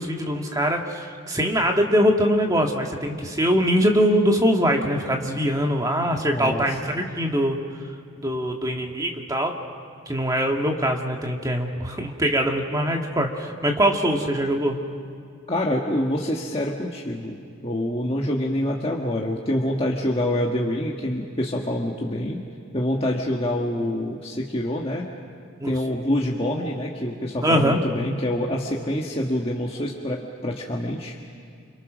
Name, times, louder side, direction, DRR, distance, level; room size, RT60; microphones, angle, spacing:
voice 1, 0.0-7.6 8.2-9.6 10.1-14.8 25.6-25.7 27.4-27.8, equal, 15° right, 2 dB, 1.9 m, -22 dB
voice 2, 6.3-6.8 15.5-22.4 22.7-25.1 25.7-31.2, left 1 dB, 25° left, -2 dB, 1.6 m, -26 dB
29.5 x 28.0 x 6.3 m, 2.4 s
head